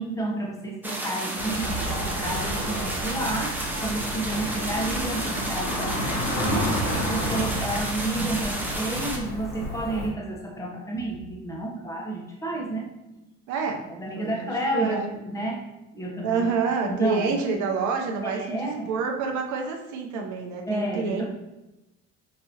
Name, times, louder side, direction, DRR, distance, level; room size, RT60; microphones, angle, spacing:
voice 1, 0.0-6.7 7.0-12.9 14.0-15.6 15.9-16.5 16.9-17.3 18.2-18.9 20.7-21.3, right 2 dB, 10° left, -2 dB, 0.9 m, -31 dB
sound 1, 0.8-9.2, right 1 dB, 5° right, 0.6 m, -32 dB
Cricket / Motor vehicle (road), 1.3-10.1, equal, 75° left, 1.1 m, -30 dB
voice 2, 13.5-13.8 14.1-15.1 16.2-21.3, right 5 dB, 70° right, 2 dB, 0.8 m, -28 dB
5.1 x 2.8 x 2.9 m, 0.97 s
cardioid pair, 110°, 30 cm